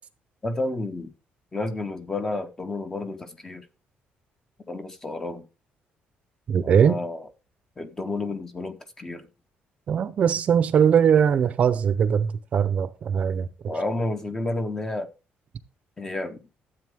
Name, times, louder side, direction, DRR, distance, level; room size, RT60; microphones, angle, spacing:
voice 1, 0.4-1.1 1.5-3.7 4.7-5.5 6.6-7.3 7.8-9.3 13.7-15.1 16.0-16.4, left 2 dB, 15° left, 1.0 m, -31 dB
voice 2, 6.5-7.0 9.9-13.5, right 7 dB, 40° right, 0.7 m, -21 dB
12.5 x 8.1 x 3.7 m
cardioid pair, 180°, 4 cm